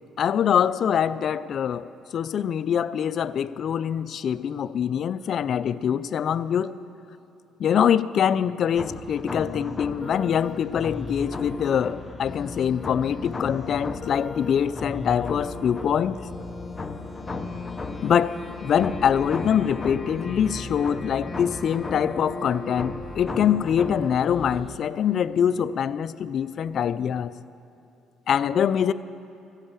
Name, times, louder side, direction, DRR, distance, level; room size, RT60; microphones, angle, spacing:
voice 1, 0.2-6.7 7.6-16.2 18.0-27.3 28.3-28.9, left 8 dB, 50° left, 15 dB, 0.3 m, -24 dB
sound 1, 8.8-24.8, left 3 dB, 20° left, 0.8 m, -35 dB
13.5 x 8.2 x 8.6 m, 2.7 s
cardioid pair, 120°, 0 cm